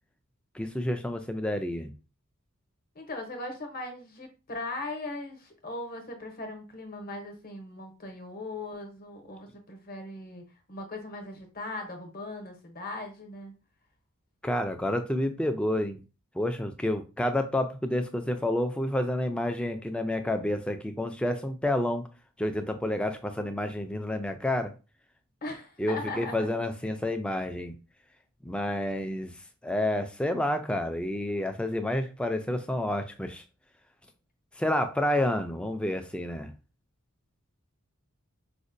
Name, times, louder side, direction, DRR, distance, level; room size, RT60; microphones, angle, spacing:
voice 1, 0.5-1.9 14.4-16.0 16.3-22.1 22.4-24.7 25.8-27.7 28.4-33.4 34.6-36.5, left 1 dB, 5° left, 0.3 m, -29 dB
voice 2, 2.9-13.5 25.4-26.5, left 2 dB, 40° left, 0.8 m, -39 dB
5.0 x 2.1 x 2.5 m
head